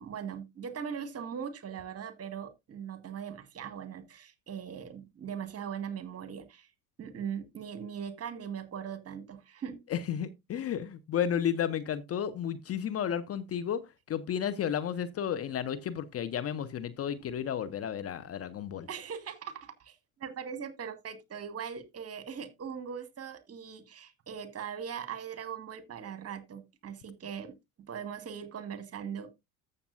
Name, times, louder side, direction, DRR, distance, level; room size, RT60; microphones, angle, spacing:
voice 1, 0.0-6.7 7.0-9.8 18.9-27.5 27.9-29.3, right 7 dB, 30° right, 1.7 m, -40 dB
voice 2, 9.9-13.8 14.1-18.9, left 9 dB, 30° left, 0.8 m, -32 dB
14.0 x 6.8 x 2.5 m
figure-of-eight pair, 65°, 46 cm